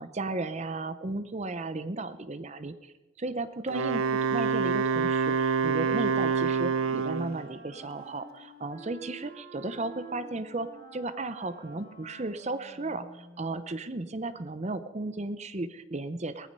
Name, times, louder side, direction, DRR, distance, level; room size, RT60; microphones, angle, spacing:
voice 1, 0.0-16.5, right 2 dB, 30° right, 12 dB, 0.6 m, -35 dB
Wind instrument woodwind instrument, 3.7-7.4, right 5 dB, 85° right, 0.8 m, -27 dB
Wind instrument woodwind instrument 2, 5.6-13.8, right 2 dB, 50° right, 4.7 m, -50 dB
18.5 x 14.5 x 5.4 m, 1.1 s
head